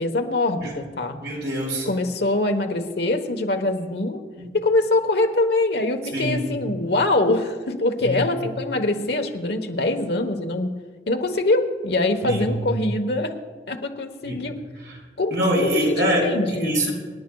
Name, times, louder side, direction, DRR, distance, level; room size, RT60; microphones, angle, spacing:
voice 1, 0.0-1.2 1.9-4.2 4.5-10.7 11.1-13.4 13.7-14.5 15.2-16.8, left 2 dB, 75° left, 5 dB, 1.1 m, -23 dB
voice 2, 1.2-1.9 4.4-4.5 6.1-6.4 8.0-8.2 12.2-12.6 14.2-14.4 15.3-16.3 16.6-16.9, equal, 85° right, -1 dB, 4.0 m, -24 dB
25.5 x 10.5 x 2.3 m, 1.4 s
head